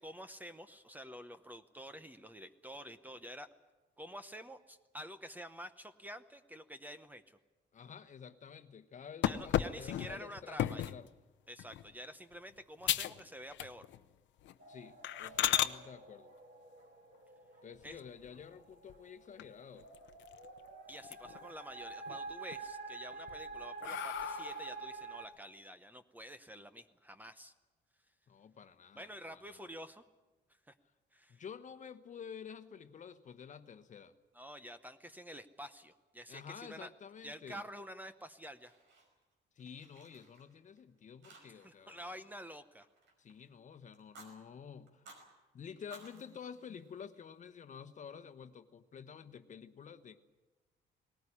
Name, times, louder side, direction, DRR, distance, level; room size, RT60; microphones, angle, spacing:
voice 1, 0.0-3.5 4.0-7.4 9.2-10.9 11.5-13.9 17.8-18.0 20.9-27.5 28.9-30.0 30.7-30.8 31.1-31.4 34.3-36.9 37.2-38.7 41.4-42.9, equal, 10° right, 10 dB, 0.8 m, -49 dB
voice 2, 7.7-11.1 14.7-16.3 17.6-19.9 28.3-29.7 31.3-34.1 36.3-37.6 39.6-42.2 43.2-45.1 45.5-50.2, left 7 dB, 40° left, 10 dB, 1.1 m, -50 dB
sound 1, 9.2-11.0 11.6-11.9 12.3-12.4 12.8-13.2 13.5-14.0 14.4-14.5 15.0-15.7 17.8-18.4 18.9-19.0 19.4-19.5 19.8-20.6 20.9-21.5 21.9-22.6 23.1-24.8, left 12 dB, 85° left, 0.8 m, -35 dB
sound 2, 14.6-25.3, right 4 dB, 55° right, 5.0 m, -48 dB
Fire, 38.2-39.3 39.6-40.8 41.2-41.8 42.1-43.5 43.9-44.3 44.9-45.3 45.8-47.3, right 3 dB, 90° right, 5.3 m, -59 dB
19.5 x 19.0 x 9.9 m, 1.2 s
cardioid pair, 155°, 19 cm